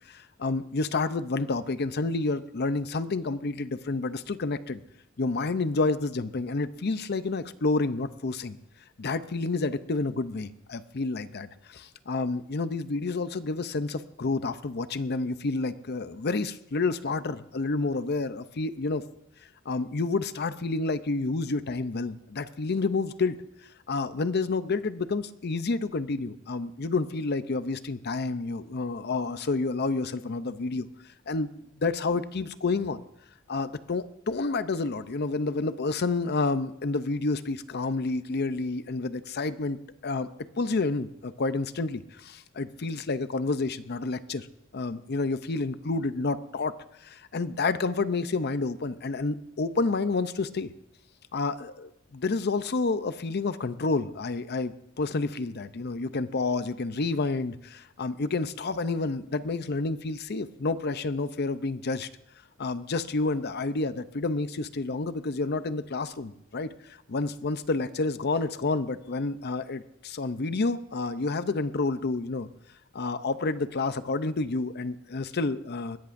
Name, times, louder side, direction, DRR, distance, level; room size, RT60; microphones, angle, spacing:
voice 1, 0.1-4.8 5.2-8.6 9.0-19.0 19.7-23.4 23.9-30.9 31.3-31.5 31.8-33.0 33.5-39.8 40.0-40.3 40.6-44.5 44.7-46.7 47.0-50.7 51.3-62.1 62.6-72.5 72.9-76.0, left 3 dB, 50° left, 12 dB, 0.6 m, -29 dB
21.0 x 16.5 x 2.6 m, 0.84 s
head